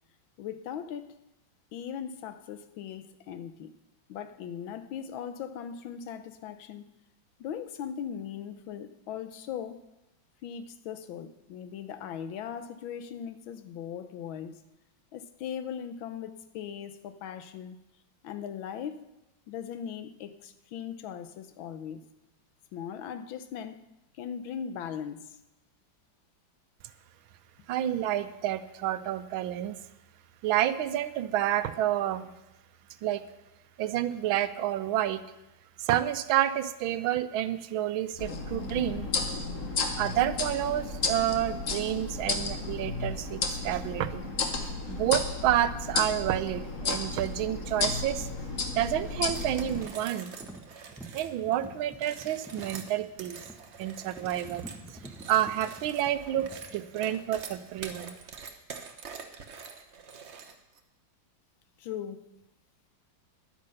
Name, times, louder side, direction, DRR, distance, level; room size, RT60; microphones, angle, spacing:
voice 1, 0.4-1.2 1.7-3.7 4.1-7.0 7.4-9.8 10.4-14.6 15.1-17.8 18.2-19.1 19.5-22.1 22.7-23.8 24.1-25.4 61.8-62.3, left 8 dB, 80° left, 1.6 m, -39 dB
voice 2, 27.7-29.8 30.4-32.3 33.0-33.2 33.8-35.2 35.8-39.1 40.0-44.3 44.6-48.3 48.8-50.3 51.1-53.4 53.8-54.7 55.3-58.1, right 12 dB, 85° right, 1.5 m, -29 dB
sound 1, 38.2-49.8, left 3 dB, 45° left, 1.4 m, -33 dB
sound 2, 45.4-45.5 48.6-49.0 49.3-57.5 57.8-58.2, right 1 dB, 5° right, 0.3 m, -49 dB
sound 3, 49.3-51.3 51.9-60.8, right 5 dB, 45° right, 1.0 m, -45 dB
11.0 x 9.6 x 6.5 m
omnidirectional pair, 2.2 m